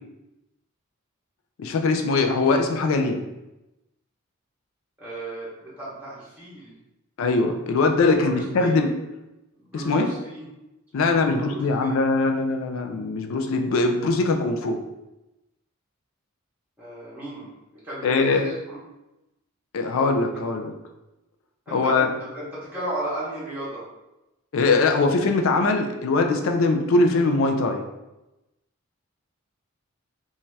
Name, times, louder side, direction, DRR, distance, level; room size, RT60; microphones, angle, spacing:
voice 1, 1.6-3.2 7.2-8.9 9.7-10.1 10.9-14.8 18.0-18.4 19.7-20.7 21.7-22.1 24.5-27.8, left 3 dB, 70° left, 4 dB, 0.4 m, -21 dB
voice 2, 5.0-6.8 8.2-8.8 9.6-10.4 10.9-11.9 16.8-17.5 17.8-18.8 20.3-20.4 21.7-23.8, right 1 dB, 5° right, -10 dB, 0.8 m, -35 dB
2.7 x 2.3 x 3.1 m, 0.97 s
head